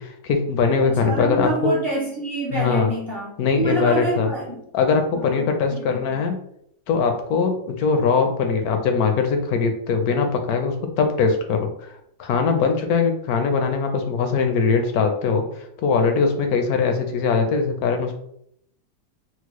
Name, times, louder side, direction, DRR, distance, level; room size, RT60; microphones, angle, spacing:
voice 1, 0.0-1.7 2.5-2.9 3.4-4.3 4.7-6.4 6.9-11.9 12.2-18.2, left 5 dB, 70° left, 5 dB, 1.0 m, -21 dB
voice 2, 0.8-4.6 5.1-6.2, right 2 dB, 65° right, -5 dB, 0.5 m, -27 dB
4.4 x 2.0 x 3.0 m, 0.72 s
omnidirectional pair, 1.8 m